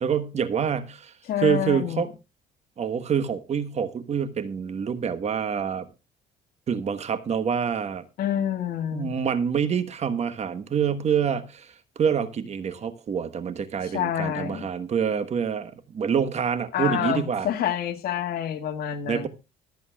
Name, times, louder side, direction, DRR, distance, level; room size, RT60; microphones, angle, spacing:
voice 1, 0.0-1.1 1.4-2.1 2.8-5.9 6.7-8.0 8.9-17.5 19.1-19.3, right 7 dB, 40° right, 1.2 m, -26 dB
voice 2, 1.3-2.1 8.2-9.1 13.8-14.7 16.7-19.3, left 10 dB, 65° left, 1.8 m, -28 dB
24.5 x 8.4 x 2.3 m
cardioid pair, 110°, 17 cm